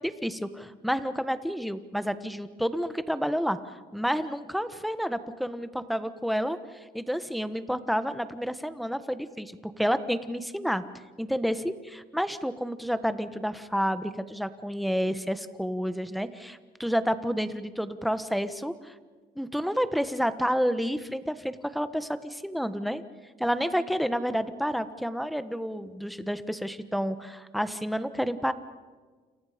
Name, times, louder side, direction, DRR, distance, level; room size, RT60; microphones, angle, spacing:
voice 1, 0.0-6.6 6.9-10.8 11.2-18.9 19.3-23.0 23.4-28.5, equal, ahead, 11 dB, 1.4 m, -30 dB
29.5 x 28.0 x 5.2 m, 1.5 s
cardioid pair, 110°, 17 cm